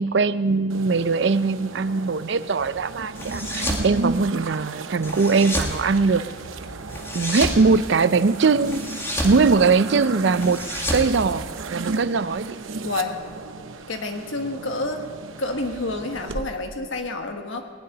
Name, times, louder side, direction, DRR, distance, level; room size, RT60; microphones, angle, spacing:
voice 1, 0.0-6.2 7.1-8.8 9.2-10.6 10.9-11.5 11.7-12.5, right 4 dB, 60° right, 14 dB, 0.5 m, -21 dB
sound 1, 0.7-16.4, right 3 dB, 80° right, 0.8 m, -35 dB
sound 2, 3.2-3.9 5.0-5.8 6.9-7.6 8.7-9.4 10.4-11.9, left 1 dB, 15° left, 1.7 m, -29 dB
voice 2, 12.8-13.2 13.9-15.1 15.4-17.6, left 2 dB, 75° left, 4 dB, 1.5 m, -28 dB
19.0 x 6.7 x 9.6 m, 2.1 s
head